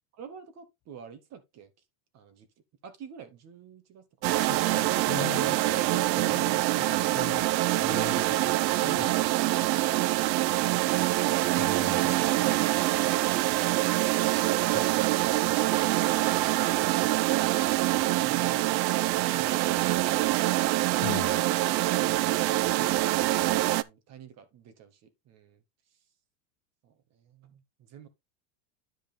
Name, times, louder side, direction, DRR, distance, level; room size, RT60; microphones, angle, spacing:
voice 1, 0.1-1.7 2.1-2.5 2.8-4.3 21.8-25.6 26.8-28.1, right 7 dB, 30° right, 1.6 m, -50 dB
sound 1, 4.2-23.8, right 17 dB, 85° right, 0.7 m, -25 dB
voice 2, 4.5-7.4 7.8-8.5 8.8-9.1 11.6-12.5 14.7-14.8 21.0-21.4, left 13 dB, 35° left, 1.0 m, -40 dB
10.5 x 5.0 x 3.5 m
supercardioid pair, 155°, 50 cm